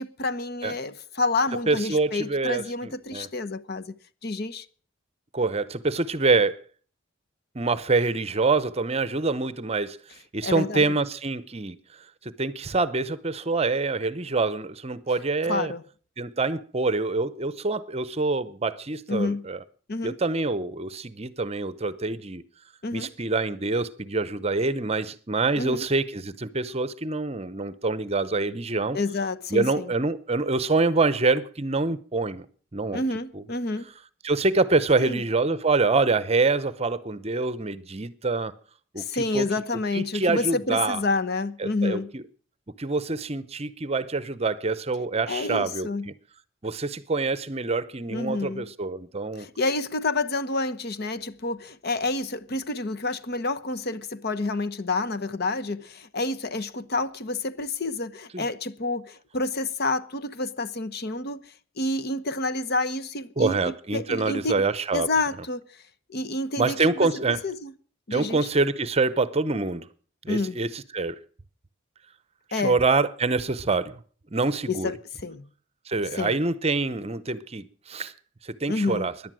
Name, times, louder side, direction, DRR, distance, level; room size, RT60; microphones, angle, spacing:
voice 1, 0.0-3.9 4.2-4.7 10.4-10.9 15.5-15.8 19.1-19.4 19.9-20.2 22.8-23.1 25.6-25.9 28.9-29.9 32.9-33.9 35.0-35.2 39.0-42.1 45.3-46.1 48.1-48.7 49.4-61.4 61.8-64.7 64.9-65.6 66.1-67.7 68.1-68.5 70.3-70.6 72.5-72.8 74.7-75.0 75.2-75.5 76.2-76.4 78.7-79.1, left 3 dB, 55° left, 0.9 m, -29 dB
voice 2, 1.7-3.3 5.3-6.6 7.5-10.0 10.3-11.8 12.2-15.7 16.2-19.6 20.0-22.4 22.9-29.0 29.5-32.5 32.7-33.0 33.3-33.4 34.2-38.5 38.9-39.0 39.3-39.4 39.9-41.0 41.6-42.2 42.8-46.1 46.6-49.5 58.3-58.4 63.4-65.1 66.6-67.4 68.1-69.9 70.2-71.2 72.6-74.0 74.3-74.9 75.9-78.1 78.4-79.1, right 3 dB, 30° right, 0.8 m, -26 dB
17.0 x 11.0 x 6.2 m
head